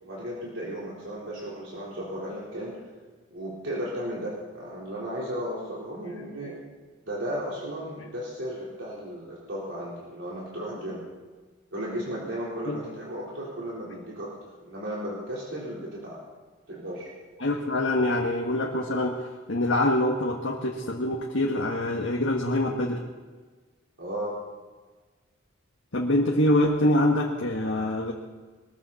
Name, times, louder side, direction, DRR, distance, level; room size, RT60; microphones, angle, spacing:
voice 1, 0.0-2.8 3.3-6.6 7.1-11.0 11.7-14.3 14.6-16.2 16.7-17.1 24.0-24.4, equal, 75° right, -6 dB, 4.0 m, -35 dB
voice 2, 17.4-23.0 25.9-28.1, left 1 dB, 80° left, -1 dB, 1.5 m, -25 dB
21.5 x 15.0 x 4.2 m, 1.4 s
head